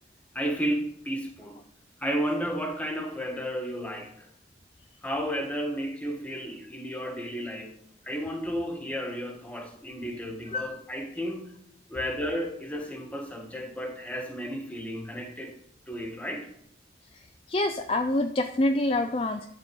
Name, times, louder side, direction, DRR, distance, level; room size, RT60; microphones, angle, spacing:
voice 1, 0.3-1.6 2.0-4.3 5.0-7.7 8.0-11.5 11.9-15.5 15.9-16.5, equal, 10° left, 1.6 m, -33 dB
voice 2, 17.5-19.5, left 1 dB, 30° left, 0.5 m, -26 dB
11.5 x 4.4 x 7.8 m
head